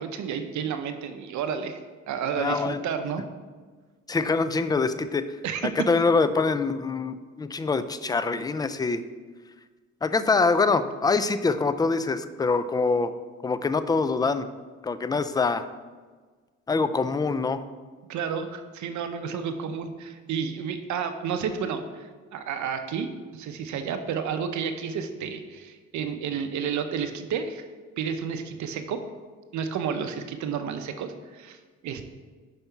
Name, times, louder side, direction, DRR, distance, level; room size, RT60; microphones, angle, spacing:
voice 1, 0.0-1.8 2.1-3.2 5.4-5.7 18.1-27.6 28.0-29.0 29.5-31.6 31.8-32.1, right 7 dB, 70° right, 8 dB, 0.6 m, -31 dB
voice 2, 2.4-2.8 4.1-5.2 5.6-9.0 10.0-13.1 13.4-14.5 14.8-15.7 16.7-17.6, left 4 dB, 15° left, 12 dB, 0.3 m, -24 dB
5.6 x 5.4 x 4.5 m, 1.4 s
cardioid pair, 90°, 30 cm